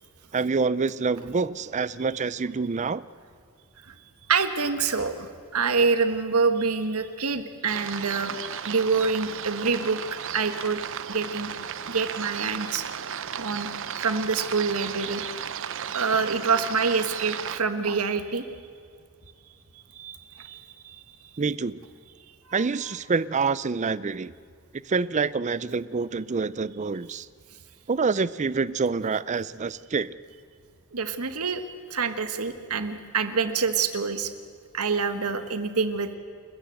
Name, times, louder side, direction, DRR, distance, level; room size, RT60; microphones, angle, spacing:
voice 1, 0.3-3.1 21.4-21.8 22.5-24.3 24.9-27.3 27.9-30.2, right 4 dB, 35° right, 18 dB, 0.5 m, -26 dB
voice 2, 4.3-8.4 8.6-10.0 10.3-10.8 11.1-11.5 11.9-12.8 13.4-13.7 14.0-15.2 15.9-18.4 19.7-21.0 30.9-31.6 31.9-34.3 34.7-36.1, right 4 dB, 80° right, 9 dB, 1.5 m, -26 dB
sound 1, 7.7-17.6, right 8 dB, 60° right, 0.8 m, -34 dB
30.0 x 14.0 x 7.9 m, 2.1 s
head